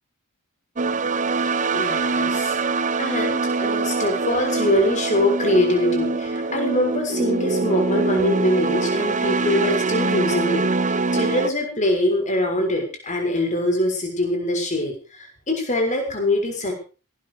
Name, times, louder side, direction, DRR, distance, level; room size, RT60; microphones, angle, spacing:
sound 1, 0.8-11.5, right 3 dB, 35° right, 0.9 m, -23 dB
voice 1, 1.7-2.6 3.0-16.7, left 1 dB, 35° left, 2 dB, 6.5 m, -23 dB
17.5 x 12.5 x 5.0 m, 0.37 s
head